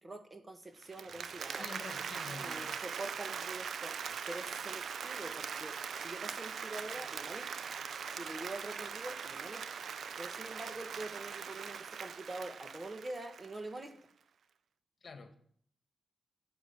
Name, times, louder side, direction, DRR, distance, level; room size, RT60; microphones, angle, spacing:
voice 1, 0.0-1.7 2.4-7.5 8.1-9.9 10.2-13.9, right 2 dB, 30° right, 7 dB, 1.8 m, -45 dB
Applause, 0.8-13.8, right 6 dB, 75° right, 0.8 m, -41 dB
voice 2, 1.5-2.8 15.0-15.3, left 4 dB, 50° left, 7 dB, 1.8 m, -47 dB
11.5 x 8.1 x 9.5 m, 0.62 s
cardioid pair, 75°, 0 cm